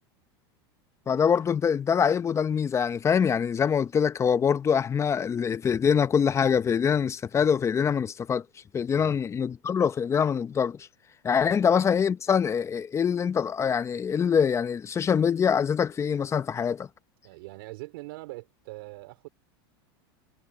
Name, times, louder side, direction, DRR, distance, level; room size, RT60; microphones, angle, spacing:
voice 1, 1.1-8.4 8.7-10.9 11.2-16.9, left 7 dB, 20° left, 1.0 m, -24 dB
voice 2, 17.2-19.3, right 22 dB, 70° right, 4.4 m, -42 dB
supercardioid pair, 120°, 13 cm